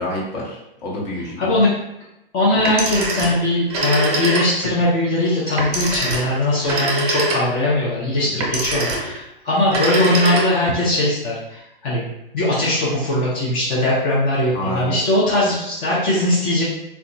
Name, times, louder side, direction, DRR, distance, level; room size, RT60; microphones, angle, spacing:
voice 1, 0.0-1.6 8.3-8.5 14.5-15.0 15.4-15.5, left 1 dB, 45° left, -4 dB, 1.0 m, -28 dB
voice 2, 1.4-1.7 2.3-12.1 12.3-16.6, left 1 dB, 15° left, -8 dB, 0.4 m, -20 dB
Telephone, 2.6-4.8 5.6-7.7 8.4-9.2 9.6-10.8, right 1 dB, 40° right, 0.8 m, -23 dB
2.7 x 2.2 x 2.5 m, 0.88 s
hypercardioid pair, 140°, 29 cm